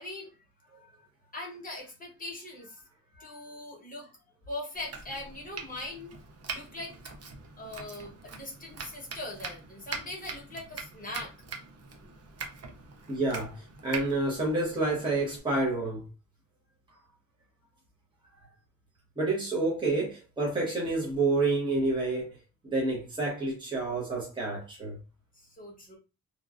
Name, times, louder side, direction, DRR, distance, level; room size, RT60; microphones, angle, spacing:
voice 1, 0.0-2.9 3.1-4.1 4.5-6.2 6.5-7.0 7.6-11.3 25.3-26.0, left 2 dB, 25° left, 1.0 m, -41 dB
Domestic sounds home sounds, 4.7-15.4, right 5 dB, 45° right, 0.5 m, -43 dB
voice 2, 13.1-16.1 19.2-22.3 22.6-25.0, right 2 dB, 15° right, 0.9 m, -29 dB
3.0 x 2.2 x 2.4 m
wide cardioid pair, 160°, 35 cm